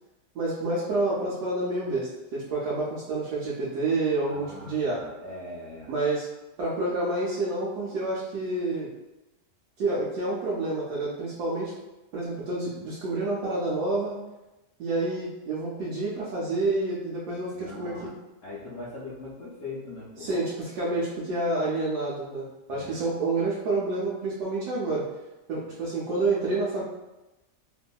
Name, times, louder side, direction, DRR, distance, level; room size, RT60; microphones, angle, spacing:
voice 1, 0.3-5.0 5.9-6.3 6.6-8.9 9.8-11.7 12.1-14.2 14.8-18.0 20.2-25.0 25.5-26.8, right 2 dB, 75° right, -7 dB, 1.2 m, -28 dB
voice 2, 4.3-5.9 17.5-18.1 18.4-20.3 22.7-23.1, left 2 dB, 65° left, -8 dB, 0.8 m, -41 dB
2.8 x 2.6 x 2.2 m, 1.0 s
omnidirectional pair, 1.8 m